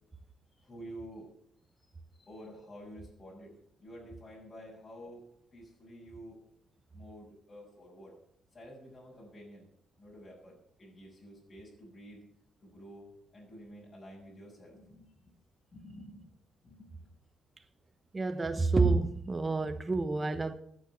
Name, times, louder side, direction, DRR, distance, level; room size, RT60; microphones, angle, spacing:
voice 1, 0.6-1.3 2.2-3.5 3.8-5.2 5.5-6.4 6.9-8.1 8.5-9.6 10.0-12.2 12.6-13.1 13.3-15.3 15.7-16.3 16.6-17.1, equal, 30° left, 6.6 m, -50 dB
voice 2, 18.1-20.5, right 3 dB, 25° right, 1.1 m, -28 dB
15.5 x 9.2 x 7.2 m
cardioid pair, 90°, 0 cm